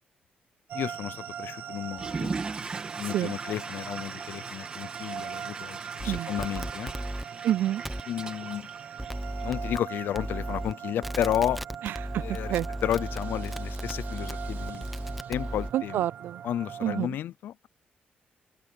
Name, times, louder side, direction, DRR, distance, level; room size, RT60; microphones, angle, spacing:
voice 1, 0.7-2.3 3.0-6.9 8.1-8.7 9.4-11.6 12.2-14.8 15.3-16.0 16.4-17.7, left 11 dB, 75° left, 0.5 m, -32 dB
sound 1, 0.7-17.0, right 8 dB, 60° right, 1.2 m, -41 dB
Water / Toilet flush, 1.9-9.6, right 4 dB, 25° right, 2.2 m, -39 dB
sound 2, 6.0-7.2 7.8-8.0 9.0-9.8 10.2-10.7 11.0-15.7, right 1 dB, 5° right, 0.9 m, -35 dB
voice 2, 7.4-7.8 11.8-12.2 12.5-12.7 15.7-16.4 16.8-17.2, right 12 dB, 85° right, 0.3 m, -28 dB
wide cardioid pair, 170°, 3 cm